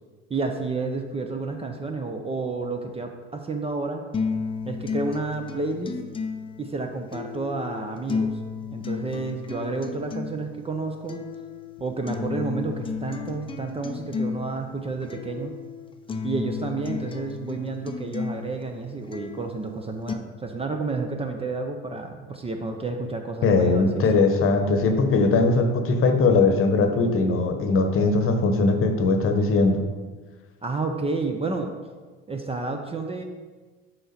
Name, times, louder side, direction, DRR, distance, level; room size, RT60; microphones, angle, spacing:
voice 1, 0.3-4.0 4.7-5.9 6.6-8.3 8.7-11.2 11.8-15.6 16.2-24.0 30.6-31.7 32.3-33.2, right 3 dB, 20° right, 4 dB, 0.7 m, -30 dB
sound 1, 4.1-20.1, left 5 dB, 15° left, 0.6 m, -33 dB
voice 2, 23.4-29.8, left 3 dB, 45° left, 6 dB, 1.0 m, -20 dB
6.4 x 4.6 x 4.3 m, 1.3 s
hypercardioid pair, 75°, 31 cm